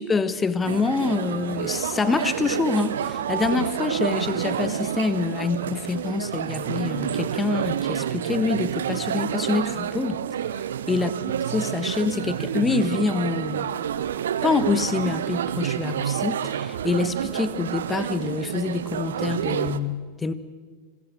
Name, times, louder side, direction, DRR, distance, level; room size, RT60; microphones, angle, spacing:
voice 1, 0.0-10.2 10.9-11.1 11.5-13.7 14.4-20.3, left 4 dB, 15° left, 14 dB, 1.4 m, -26 dB
sound 1, 0.6-19.8, right 9 dB, 60° right, 0.9 m, -28 dB
26.5 x 21.5 x 7.4 m, 1.5 s
figure-of-eight pair, 90°, 0 cm